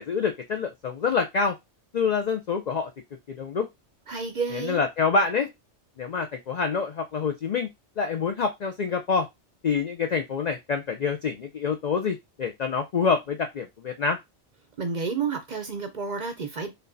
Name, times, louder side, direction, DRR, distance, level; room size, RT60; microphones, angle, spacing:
voice 1, 0.0-1.6 1.9-2.9 3.3-3.7 4.5-5.5 6.0-7.7 8.0-9.3 9.6-14.2, left 5 dB, 65° left, 0.4 m, -26 dB
voice 2, 4.1-4.8 14.8-16.7, right 5 dB, 50° right, 0.6 m, -30 dB
4.3 x 3.3 x 2.6 m
omnidirectional pair, 1.2 m